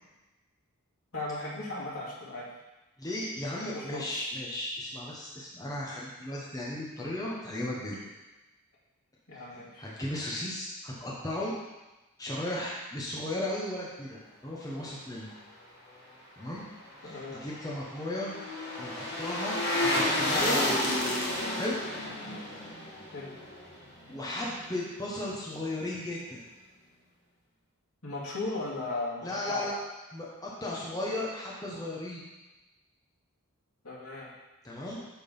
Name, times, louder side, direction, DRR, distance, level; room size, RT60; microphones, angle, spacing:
voice 1, 1.1-2.5 3.6-4.1 9.3-9.9 17.0-17.4 23.1-23.4 28.0-29.7 33.8-34.3, left 2 dB, 75° left, -7 dB, 2.4 m, -37 dB
voice 2, 3.0-8.0 9.3-9.4 9.8-11.5 12.2-15.3 16.4-16.6 17.0-18.4 18.8-20.6 21.5-21.8 24.1-26.4 29.2-29.8 30.1-32.2 34.6-35.0, left 1 dB, 15° left, -5 dB, 0.9 m, -35 dB
sound 1, 17.0-24.2 24.5-24.6, left 1 dB, 50° left, 1.6 m, -31 dB
8.6 x 3.8 x 5.4 m, 1.1 s
head